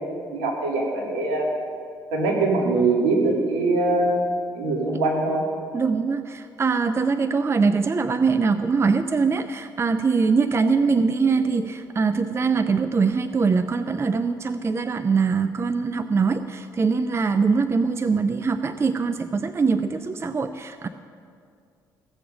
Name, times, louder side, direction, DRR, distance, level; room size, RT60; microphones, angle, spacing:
voice 1, 0.0-1.5 2.1-4.2 4.5-5.4, right 2 dB, 75° right, -3 dB, 2.2 m, -23 dB
voice 2, 5.7-20.9, right 4 dB, 25° right, 10 dB, 0.5 m, -22 dB
16.0 x 6.8 x 6.3 m, 2.3 s
figure-of-eight pair, 45°, 10 cm